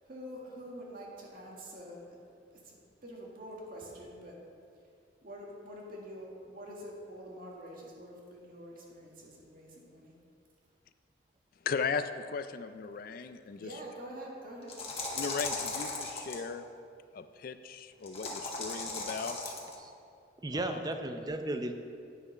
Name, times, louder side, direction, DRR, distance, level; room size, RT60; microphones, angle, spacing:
voice 1, 0.0-2.2 2.5-2.7 3.0-4.4 5.2-10.2 13.5-14.8, equal, 50° right, -2 dB, 1.8 m, -46 dB
voice 2, 11.6-13.7 15.2-16.6 17.1-19.5 20.5-20.8, left 5 dB, 50° left, 11 dB, 0.4 m, -37 dB
sound 1, 14.6-16.4 18.0-19.7, left 3 dB, 30° left, 1.4 m, -37 dB
voice 3, 20.4-21.7, right 1 dB, 20° right, 6 dB, 0.6 m, -34 dB
9.6 x 6.8 x 5.4 m, 2.4 s
head